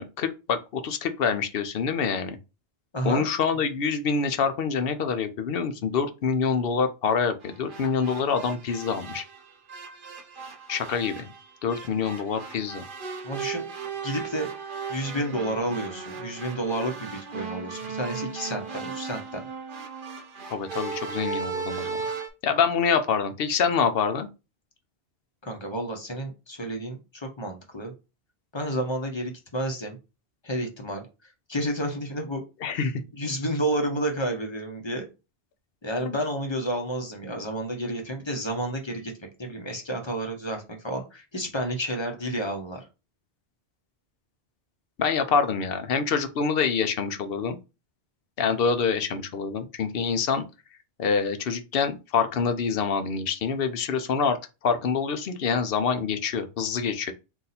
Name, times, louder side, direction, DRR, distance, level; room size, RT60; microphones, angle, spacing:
voice 1, 0.0-2.4 3.0-9.2 10.7-11.3 11.6-12.8 20.5-22.0 22.4-24.3 32.6-32.9 36.1-36.2 45.0-47.6 48.4-50.4 51.0-54.4 54.6-57.1, left 5 dB, 65° left, 0.8 m, -26 dB
voice 2, 2.9-3.2 13.2-13.6 14.0-14.5 14.9-19.4 25.4-27.9 28.5-30.0 30.4-31.0 31.5-32.4 32.7-32.9 33.2-35.1 35.8-39.1 39.4-42.9, right 1 dB, 25° left, 0.9 m, -30 dB
sound 1, 7.4-22.3, right 5 dB, 55° right, 0.9 m, -36 dB
4.0 x 2.7 x 4.1 m
omnidirectional pair, 1.1 m